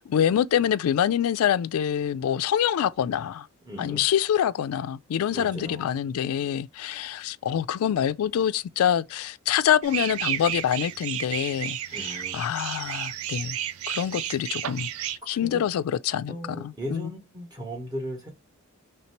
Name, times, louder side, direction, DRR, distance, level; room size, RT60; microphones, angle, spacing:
voice 1, 0.0-3.5 3.8-13.6 13.9-14.9 15.3-17.1, left 9 dB, 90° left, 0.3 m, -26 dB
voice 2, 3.6-4.0 5.3-5.9 6.2-6.4 11.9-12.4 15.4-15.6 16.3-18.3, equal, 20° right, 1.2 m, -37 dB
sound 1, 9.8-15.2, right 11 dB, 75° right, 0.3 m, -32 dB
3.3 x 2.9 x 4.4 m
head